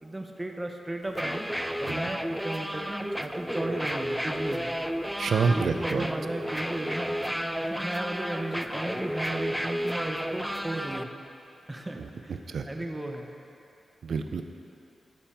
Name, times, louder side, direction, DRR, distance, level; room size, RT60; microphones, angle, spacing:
voice 1, 0.0-1.5 1.8-4.7 5.5-7.2 7.6-11.1 11.7-12.4 12.7-13.3, right 1 dB, 20° right, 3 dB, 0.8 m, -35 dB
sound 1, 1.1-11.0, equal, ahead, 0.3 m, -32 dB
voice 2, 5.2-6.1 12.0-12.1 12.5-12.7 14.0-14.4, right 5 dB, 75° right, 6 dB, 0.5 m, -27 dB
12.0 x 5.4 x 4.4 m, 2.8 s
cardioid pair, 85°, 0 cm